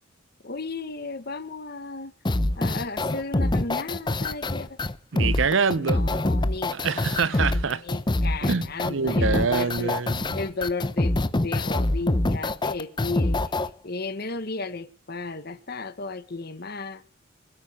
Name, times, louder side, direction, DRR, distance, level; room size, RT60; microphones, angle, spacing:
voice 1, 0.4-2.1 2.6-4.8 5.8-9.9 10.3-13.4 13.8-17.0, left 3 dB, 50° left, 1.4 m, -34 dB
sound 1, 2.3-13.7, left 2 dB, 20° left, 0.8 m, -25 dB
voice 2, 5.1-6.2 6.7-7.8 8.4-10.4, right 5 dB, 65° right, 0.7 m, -26 dB
26.0 x 8.7 x 3.6 m
head